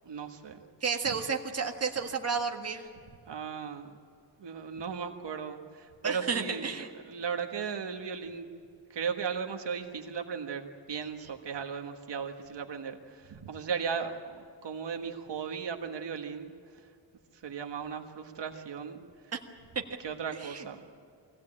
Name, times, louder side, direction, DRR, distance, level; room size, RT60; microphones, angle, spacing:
voice 1, 0.0-0.6 1.1-1.2 3.2-3.9 4.4-8.5 8.9-16.8 17.3-19.3 20.0-20.9, right 6 dB, 70° right, 4 dB, 1.6 m, -37 dB
voice 2, 0.8-2.9 6.0-6.9 19.3-19.4 20.4-20.7, right 5 dB, 35° right, 2 dB, 1.6 m, -32 dB
22.5 x 16.5 x 8.8 m, 2.3 s
wide cardioid pair, 160°, 43 cm